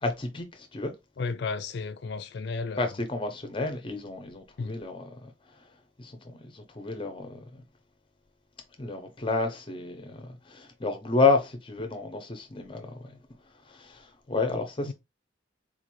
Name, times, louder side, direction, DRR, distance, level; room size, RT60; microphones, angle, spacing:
voice 1, 0.0-0.9 2.8-5.3 6.0-6.1 6.4-7.6 8.8-13.2 13.7-14.9, left 3 dB, 25° left, 0.7 m, -30 dB
voice 2, 1.2-3.0 4.6-4.8 14.9-15.0, left 4 dB, 55° left, 0.4 m, -33 dB
4.0 x 2.5 x 3.0 m
head